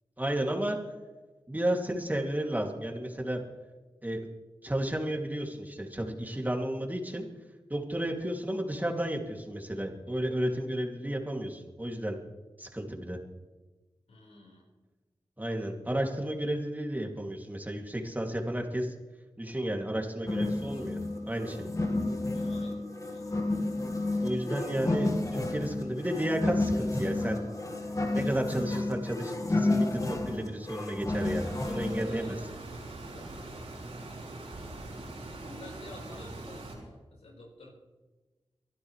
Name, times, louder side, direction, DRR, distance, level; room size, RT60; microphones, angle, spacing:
voice 1, 0.2-0.8 1.5-3.4 4.0-4.3 4.6-7.3 7.7-12.2 12.6-13.2 15.4-18.9 19.4-21.0 21.3-21.7 24.2-27.4 28.1-32.4, right 1 dB, 15° right, 1 dB, 2.6 m, -32 dB
voice 2, 14.1-14.7 22.3-23.4 32.0-32.6 33.1-33.7 34.0-37.7, left 1 dB, 85° left, -2 dB, 4.8 m, -51 dB
sound 1, 20.3-32.1, left 2 dB, 30° left, 1.9 m, -31 dB
sound 2, 31.1-36.8, right 2 dB, 80° right, 4.6 m, -43 dB
24.0 x 12.0 x 3.3 m, 1.2 s
cardioid pair, 40°, 10 cm